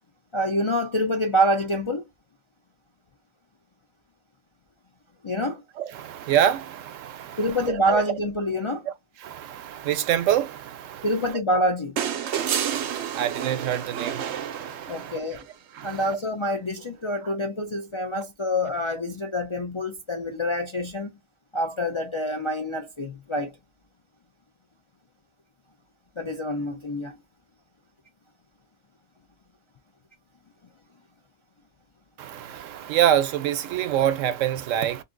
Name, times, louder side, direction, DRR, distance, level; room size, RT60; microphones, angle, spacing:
voice 1, 0.3-2.0 5.2-5.6 7.4-8.9 11.0-12.0 14.9-15.4 15.8-21.1 21.5-23.6 26.2-27.2, equal, 45° left, 0.4 m, -26 dB
voice 2, 5.8-8.0 8.9-9.0 9.2-11.4 12.2-15.4 15.7-16.2 17.2-17.3 32.2-35.0, right 10 dB, 90° right, 1.0 m, -27 dB
sound 1, 12.0-15.3 16.8-16.9, right 9 dB, 70° right, 0.9 m, -29 dB
2.6 x 2.4 x 3.8 m
omnidirectional pair, 1.3 m